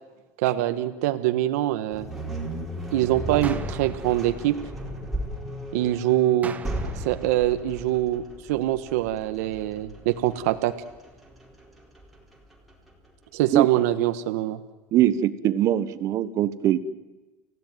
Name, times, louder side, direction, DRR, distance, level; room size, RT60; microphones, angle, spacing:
voice 1, 0.4-2.1 2.9-4.6 5.7-6.5 7.0-10.7 13.3-14.6, right 14 dB, 80° right, 9 dB, 1.4 m, -24 dB
sound 1, 1.9-13.1, right 1 dB, ahead, 4.4 m, -35 dB
sound 2, 3.4-5.5 6.4-8.5, right 6 dB, 20° right, 1.1 m, -42 dB
voice 2, 14.9-16.8, right 12 dB, 40° right, 13 dB, 1.3 m, -21 dB
30.0 x 16.0 x 9.4 m, 1.2 s
cardioid pair, 155°, 8 cm